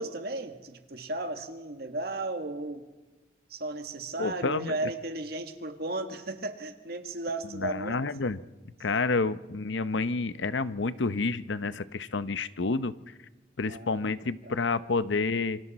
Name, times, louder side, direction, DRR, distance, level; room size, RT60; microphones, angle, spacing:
voice 1, 0.0-2.8 3.5-8.0 8.8-9.0 13.7-14.1 14.4-14.5, right 2 dB, 55° right, 6 dB, 1.7 m, -35 dB
voice 2, 4.2-4.7 7.5-8.4 8.8-12.9 13.6-15.6, left 3 dB, 80° left, 14 dB, 0.7 m, -29 dB
27.5 x 25.0 x 4.2 m, 1.1 s
head